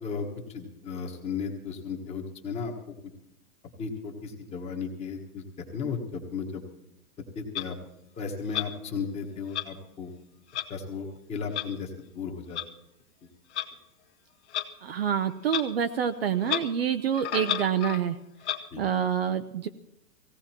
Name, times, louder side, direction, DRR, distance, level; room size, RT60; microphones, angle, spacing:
voice 1, 0.0-2.7 3.8-6.6 7.3-7.8 8.2-10.1 10.7-12.6 18.7-18.8, left 5 dB, 15° left, 3 dB, 1.4 m, -35 dB
Clock, 7.6-7.7 8.5-8.7 9.5-9.7 10.5-10.7 11.5-11.7 12.6-12.7 13.5-13.7 14.5-14.7 15.5-15.7 15.9-16.0 16.4-16.7 17.1-18.0 18.4-18.6, left 12 dB, 45° left, 1.3 m, -31 dB
voice 2, 14.8-18.2 18.8-19.7, right 8 dB, 40° right, 9 dB, 0.6 m, -27 dB
17.5 x 16.5 x 4.4 m, 0.83 s
hypercardioid pair, 165°, 47 cm